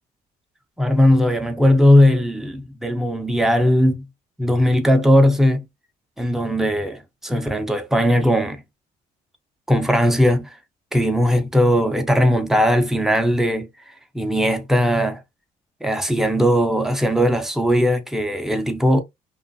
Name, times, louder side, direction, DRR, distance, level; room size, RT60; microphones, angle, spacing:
voice 1, 0.8-4.1 4.4-5.7 6.2-8.6 9.7-10.5 10.9-13.7 14.1-15.2 15.8-19.0, equal, ahead, 0.5 m, -18 dB
2.4 x 2.3 x 2.5 m
cardioid pair, 110°, 17 cm